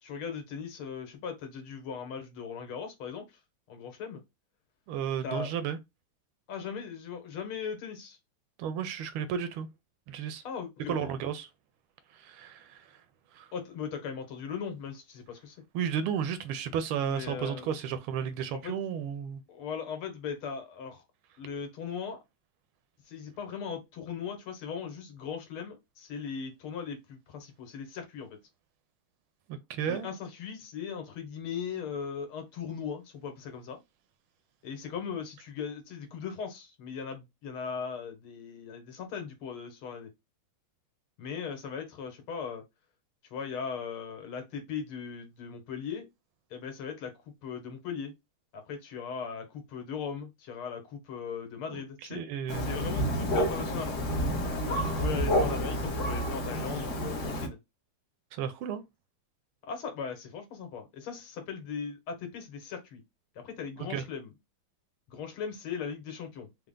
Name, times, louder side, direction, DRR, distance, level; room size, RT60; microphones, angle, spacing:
voice 1, 0.0-3.3 3.7-4.2 5.2-5.5 6.5-8.2 10.4-11.1 13.5-15.6 17.1-17.7 18.5-18.8 19.5-21.0 21.4-22.2 23.1-28.4 29.9-33.8 34.6-40.1 41.2-42.6 43.3-46.1 46.5-47.1 47.4-48.1 48.5-52.3 52.6-54.1 54.8-57.6 59.6-63.0 63.4-64.3 65.1-66.7, left 6 dB, 75° left, 1.9 m, -38 dB
voice 2, 4.9-5.8 8.6-9.7 10.1-10.4 10.9-11.5 12.1-12.8 13.3-13.5 15.7-19.4 29.5-30.1 51.7-51.8 52.1-52.7 58.3-58.8 63.8-64.0, right 8 dB, 80° right, 1.4 m, -33 dB
Thunder, 52.5-57.5, equal, 50° left, 1.0 m, -29 dB
4.4 x 2.1 x 3.7 m
omnidirectional pair, 2.4 m